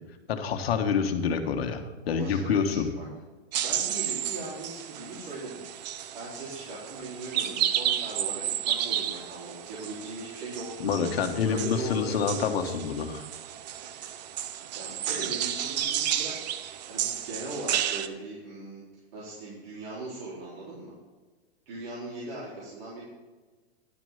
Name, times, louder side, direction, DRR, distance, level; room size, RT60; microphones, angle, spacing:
voice 1, 0.3-2.9 10.8-13.3 15.1-15.2, left 6 dB, 65° left, 6 dB, 1.4 m, -27 dB
voice 2, 2.1-3.0 3.6-5.6 5.9-10.9 11.4-12.2 14.7-16.5 16.9-18.8 19.1-20.9 21.7-23.0, right 2 dB, 60° right, -7 dB, 3.8 m, -39 dB
sound 1, 3.5-18.1, right 11 dB, 40° right, 0.6 m, -32 dB
11.5 x 6.2 x 5.7 m, 1.3 s
supercardioid pair, 160°, 33 cm